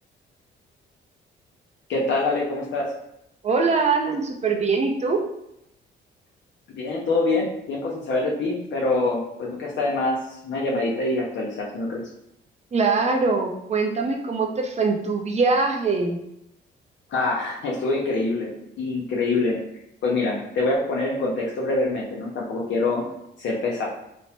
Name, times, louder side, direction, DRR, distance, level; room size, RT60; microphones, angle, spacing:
voice 1, 1.9-2.8 6.7-12.0 17.1-19.6 20.0-23.0 23.4-23.8, left 2 dB, 65° left, -3 dB, 0.6 m, -25 dB
voice 2, 3.4-5.2 12.7-16.2, right 4 dB, 35° right, 2 dB, 0.5 m, -22 dB
3.0 x 2.0 x 2.8 m, 0.81 s
cardioid pair, 90°, 20 cm